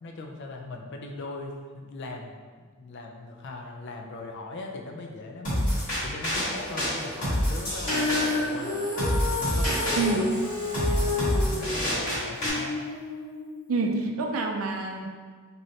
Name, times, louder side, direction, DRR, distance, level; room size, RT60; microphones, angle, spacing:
voice 1, 0.0-10.3 10.8-12.8, left 2 dB, 60° left, 2 dB, 0.4 m, -40 dB
sound 1, 5.4-12.5, equal, 40° left, 1.3 m, -28 dB
Female singing, 7.8-14.1, left 2 dB, 25° left, 0.8 m, -31 dB
voice 2, 13.7-15.1, right 3 dB, 80° right, 3 dB, 0.4 m, -27 dB
3.1 x 2.6 x 2.7 m, 1.5 s
head